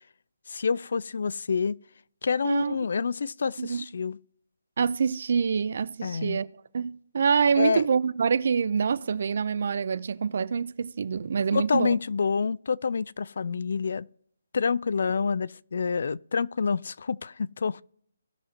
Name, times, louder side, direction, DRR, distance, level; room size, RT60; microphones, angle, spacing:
voice 1, 0.5-1.8 2.2-4.2 6.0-6.4 7.6-7.8 11.5-14.1 14.5-17.8, left 5 dB, 60° left, 0.3 m, -27 dB
voice 2, 2.4-2.8 3.6-3.8 4.8-6.5 6.7-12.0, right 6 dB, 55° right, 0.5 m, -26 dB
17.0 x 6.5 x 2.8 m
hypercardioid pair, 160°, 0 cm